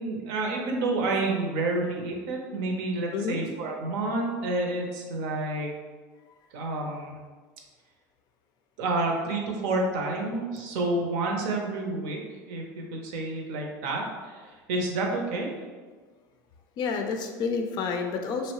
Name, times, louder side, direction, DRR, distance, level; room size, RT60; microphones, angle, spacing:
voice 1, 0.0-5.8 6.5-7.2 8.8-12.2 12.5-15.5, right 2 dB, 70° right, 1 dB, 0.6 m, -29 dB
voice 2, 16.8-18.5, left 5 dB, 50° left, 4 dB, 0.4 m, -29 dB
2.8 x 2.1 x 2.9 m, 1.4 s
hypercardioid pair, 90°, 9 cm